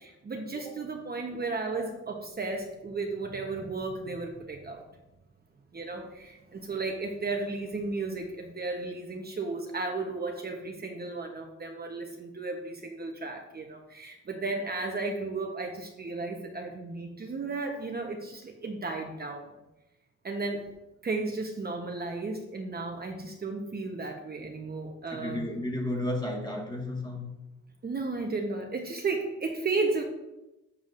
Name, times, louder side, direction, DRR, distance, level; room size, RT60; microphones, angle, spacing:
voice 1, 0.0-4.8 5.7-19.5 20.2-20.7 21.0-25.4 27.8-30.0, right 3 dB, 30° right, 2 dB, 1.0 m, -34 dB
voice 2, 1.4-1.9 25.1-27.4, left 1 dB, 15° left, 0 dB, 1.7 m, -34 dB
8.2 x 7.4 x 2.6 m, 0.95 s
cardioid pair, 90°, 30 cm